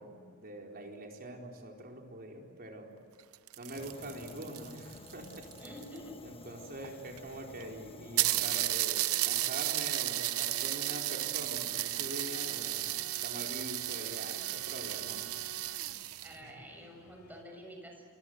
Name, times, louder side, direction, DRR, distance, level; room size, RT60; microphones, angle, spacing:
voice 1, 0.0-2.9 3.6-5.8 6.2-15.4 16.4-16.6, right 1 dB, 45° right, 1 dB, 4.5 m, -44 dB
sound 1, 3.2-6.0 6.8-6.9 7.2-7.3 7.6-7.7 8.2-16.4, right 14 dB, 70° right, 0.8 m, -33 dB
Fire, 3.7-8.7, left 2 dB, 25° left, 1.3 m, -51 dB
voice 2, 5.6-6.2 16.2-18.0, equal, 10° right, 1 dB, 7.0 m, -48 dB
sound 2, 11.3-17.4, left 2 dB, 75° left, 3.2 m, -59 dB
27.0 x 26.0 x 8.1 m, 2.2 s
head